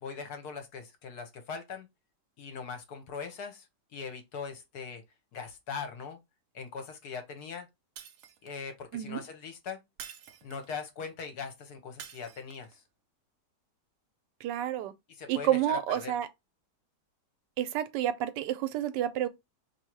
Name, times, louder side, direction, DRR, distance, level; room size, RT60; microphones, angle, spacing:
voice 1, 0.0-1.9 2.4-3.7 3.9-5.0 5.3-6.2 6.5-7.7 8.4-9.8 10.4-12.8 15.2-16.1, left 5 dB, 65° left, 1.3 m, -40 dB
Shatter, 8.0-8.7 10.0-10.8 12.0-12.8, right 8 dB, 65° right, 0.8 m, -48 dB
voice 2, 14.4-14.9 15.3-16.3 17.6-19.3, right 11 dB, 85° right, 1.2 m, -29 dB
2.9 x 2.7 x 4.4 m
omnidirectional pair, 1.9 m